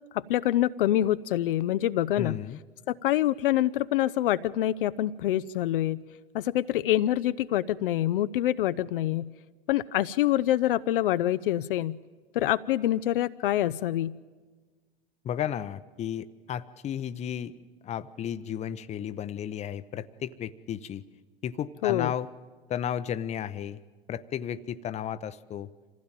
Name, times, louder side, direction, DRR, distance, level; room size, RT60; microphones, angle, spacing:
voice 1, 0.1-2.4 2.9-6.0 6.3-9.3 9.7-12.0 12.3-14.2 21.8-22.1, left 13 dB, 60° left, 13 dB, 0.6 m, -26 dB
voice 2, 2.2-2.6 15.2-17.5 17.8-21.0 21.4-22.3 22.7-23.8 24.1-25.7, left 9 dB, 20° left, 14 dB, 0.7 m, -33 dB
26.0 x 16.0 x 9.0 m, 1.4 s
figure-of-eight pair, 95°, 31 cm